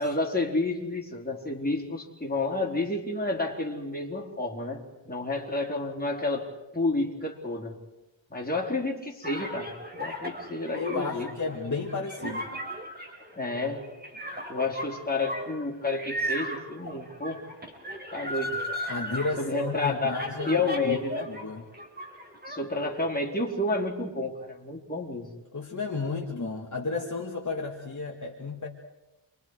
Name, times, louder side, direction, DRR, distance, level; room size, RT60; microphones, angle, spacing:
voice 1, 0.0-6.5 6.7-7.8 8.3-11.3 13.3-13.9 14.5-17.4 18.1-18.6 19.4-20.2 20.5-21.3 22.5-25.3, left 2 dB, 20° left, -1 dB, 4.1 m, -30 dB
sound 1, 9.2-21.4 21.7-22.6, equal, 20° right, 4.9 m, -36 dB
voice 2, 10.7-12.5 18.9-21.0 21.3-21.6 25.5-28.7, left 4 dB, 40° left, -2 dB, 2.5 m, -33 dB
29.5 x 24.0 x 4.9 m, 1.0 s
wide cardioid pair, 80°, 47 cm